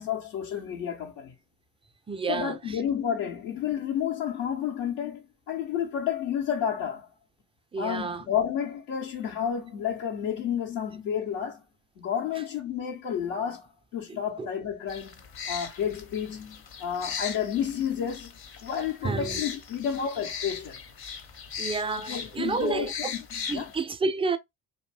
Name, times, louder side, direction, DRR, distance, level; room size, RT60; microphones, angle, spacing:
voice 1, 0.0-1.4 2.3-7.1 7.8-11.6 12.0-15.1 15.5-18.3 18.6-20.8 22.1-23.7, left 8 dB, 80° left, 0.9 m, -31 dB
voice 2, 2.1-2.8 7.7-8.2 14.1-14.5 19.0-19.4 21.6-23.1 23.5-24.4, right 4 dB, 15° right, 0.3 m, -30 dB
sound 1, 14.9-23.8, left 7 dB, 50° left, 0.9 m, -39 dB
2.6 x 2.1 x 3.1 m
hypercardioid pair, 55°, 46 cm